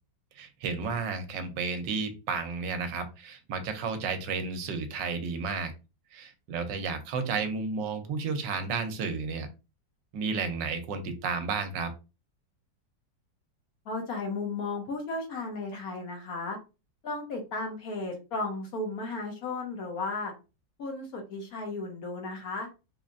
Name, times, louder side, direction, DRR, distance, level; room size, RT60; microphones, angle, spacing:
voice 1, 0.4-5.7 6.1-9.5 10.1-11.9, right 4 dB, 85° right, 8 dB, 1.3 m, -32 dB
voice 2, 13.8-16.6 17.0-20.3 20.8-22.7, left 3 dB, 60° left, 3 dB, 1.2 m, -34 dB
3.8 x 3.1 x 2.6 m, 0.29 s
omnidirectional pair, 2.0 m